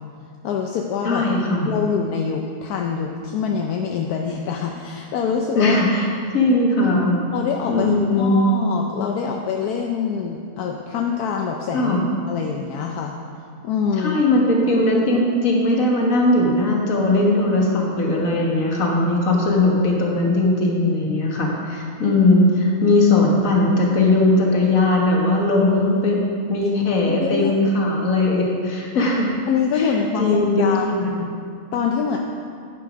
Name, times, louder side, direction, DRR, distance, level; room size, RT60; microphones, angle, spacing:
voice 1, 0.4-1.2 1.6-5.8 7.3-11.9 12.3-13.1 13.6-14.2 27.0-27.5 29.5-31.0 31.7-32.2, left 6 dB, 80° left, 1 dB, 1.2 m, -25 dB
voice 2, 1.0-1.9 5.6-6.1 6.3-7.2 7.7-8.3 11.7-12.0 14.0-26.2 26.5-29.3 29.8-31.3, left 2 dB, 60° left, -1 dB, 1.8 m, -19 dB
10.5 x 6.7 x 5.1 m, 2.3 s
omnidirectional pair, 1.6 m